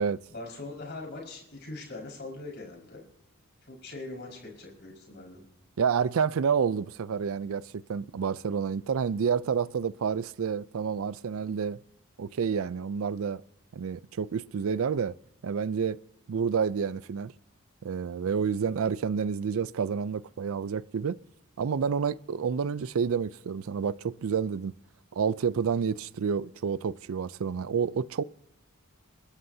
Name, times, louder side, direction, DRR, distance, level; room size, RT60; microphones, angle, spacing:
voice 1, 0.3-3.0 3.6-5.4 25.7-25.8, left 2 dB, 50° left, 5.1 m, -41 dB
voice 2, 5.8-11.8 12.2-13.4 13.7-15.1 15.4-16.0 16.3-17.3 17.8-21.2 21.6-24.7 25.1-28.2, right 6 dB, 70° right, 0.4 m, -29 dB
29.5 x 13.0 x 2.8 m
head